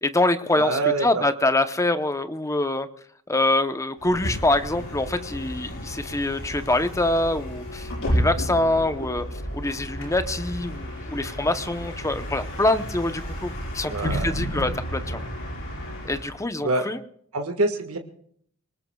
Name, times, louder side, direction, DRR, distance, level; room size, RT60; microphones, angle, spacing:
voice 1, 0.0-2.9 3.3-9.3 9.5-15.2 16.0-17.0, left 2 dB, 15° left, 10 dB, 0.8 m, -25 dB
voice 2, 0.5-1.2 13.9-14.3 16.6-16.9 17.3-18.0, right 3 dB, 70° right, 4 dB, 1.7 m, -25 dB
Bus, 4.0-16.4, equal, 60° left, 5.7 m, -32 dB
24.0 x 19.5 x 2.3 m, 0.63 s
head